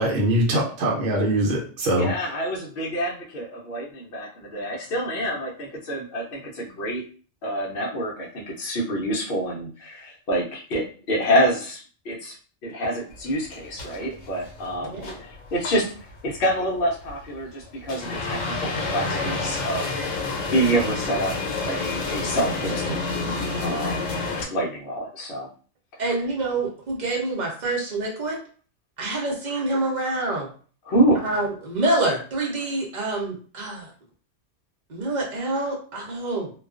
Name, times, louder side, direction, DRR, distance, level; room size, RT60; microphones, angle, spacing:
voice 1, 0.0-2.1, right 1 dB, 70° right, 1.0 m, -22 dB
voice 2, 1.9-7.0 7.4-12.4 12.6-15.9 16.2-19.9 20.5-21.3 21.7-23.1 23.6-24.2 24.5-25.5 30.9-31.2, right 1 dB, 60° left, 0.7 m, -27 dB
sound 1, 13.1-24.5, left 3 dB, 80° left, 1.0 m, -29 dB
voice 3, 26.0-28.4 29.0-30.5 31.2-33.9 34.9-36.5, right 2 dB, 45° right, 0.7 m, -26 dB
2.3 x 2.3 x 2.3 m
omnidirectional pair, 1.3 m